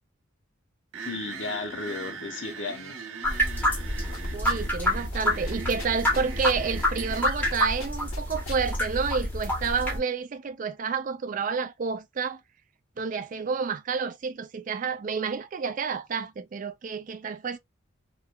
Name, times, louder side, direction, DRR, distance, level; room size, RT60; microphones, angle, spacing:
sound 1, 0.9-7.5, right 5 dB, 75° right, 0.9 m, -40 dB
voice 1, 1.0-3.1, left 3 dB, 65° left, 0.7 m, -34 dB
sound 2, 3.2-10.0, left 1 dB, 10° left, 0.7 m, -28 dB
sound 3, 4.1-4.9 5.1-5.2 5.5-6.9 7.1-7.5 7.8-8.6, left 3 dB, 85° left, 1.0 m, -42 dB
voice 2, 4.3-12.4 13.0-17.6, right 5 dB, 40° right, 0.3 m, -30 dB
2.9 x 2.2 x 2.2 m
head